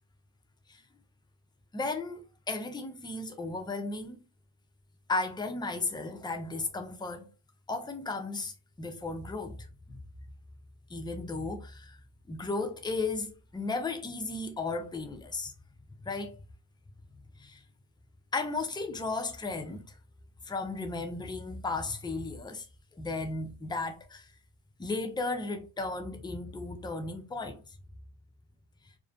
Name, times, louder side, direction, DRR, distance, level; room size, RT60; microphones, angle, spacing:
voice 1, 1.7-4.2 5.1-7.3 7.7-10.0 10.9-12.0 12.3-15.5 16.0-16.4 17.4-17.6 18.3-19.9 20.4-22.7 23.0-24.3 24.8-27.8, left 3 dB, 10° left, 0.5 m, -35 dB
2.4 x 2.1 x 2.4 m
cardioid pair, 50°, 49 cm